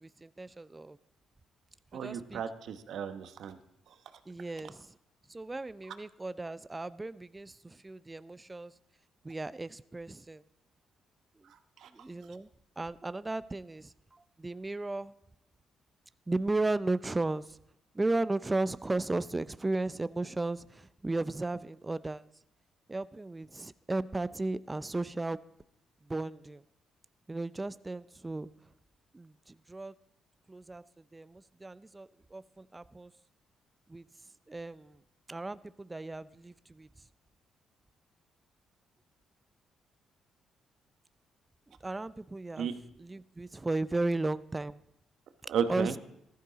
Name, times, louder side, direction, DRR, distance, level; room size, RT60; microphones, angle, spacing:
voice 1, 0.0-1.0 2.0-2.4 4.3-4.9 5.3-8.7 9.2-10.4 11.9-12.5 12.8-15.1 16.3-17.6 17.9-22.3 22.9-25.4 26.1-26.6 27.3-28.5 29.1-29.9 30.5-30.8 31.1-33.1 33.9-34.0 34.5-35.0 35.3-36.9 41.8-42.7 43.0-44.8 45.7-46.0, right 2 dB, 20° right, 16 dB, 0.5 m, -35 dB
voice 2, 1.9-3.6 11.8-11.9 42.6-42.8 45.5-46.0, right 7 dB, 70° right, 10 dB, 1.0 m, -33 dB
14.5 x 12.5 x 4.0 m, 0.79 s
supercardioid pair, 60°, 0 cm